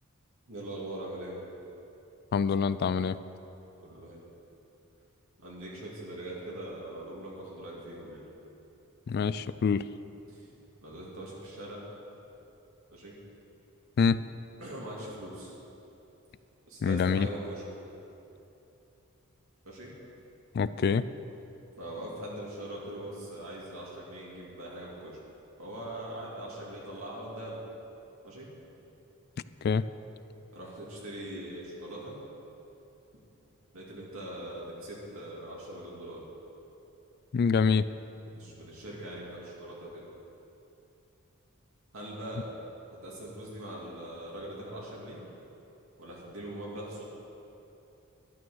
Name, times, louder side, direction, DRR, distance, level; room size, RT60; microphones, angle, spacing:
voice 1, 0.5-1.3 3.8-4.2 5.4-8.2 10.3-10.5 10.8-11.8 12.9-13.1 14.6-15.5 16.7-17.6 19.6-19.9 21.8-25.2 25.6-27.6 28.2-28.5 30.5-32.2 33.7-36.2 38.3-40.0 41.9-42.5 43.0-45.2 46.0-47.0, right 1 dB, 70° right, -5 dB, 2.4 m, -41 dB
voice 2, 2.3-3.2 9.1-9.9 14.0-14.2 16.8-17.3 20.5-21.0 29.6-29.8 37.3-37.9, left 5 dB, 50° left, 15 dB, 0.3 m, -25 dB
12.0 x 9.4 x 6.4 m, 2.9 s
head